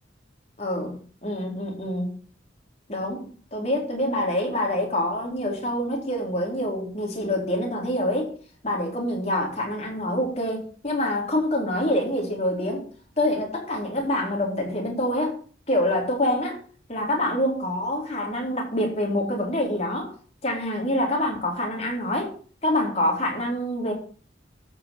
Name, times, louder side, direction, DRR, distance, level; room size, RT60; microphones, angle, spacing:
voice 1, 0.6-2.1 2.9-3.2 3.5-8.3 8.6-12.8 13.2-15.4 15.7-16.6 16.9-20.1 20.4-22.3 22.6-23.9, left 1 dB, 35° left, 0 dB, 3.9 m, -26 dB
12.5 x 5.8 x 7.3 m, 0.42 s
head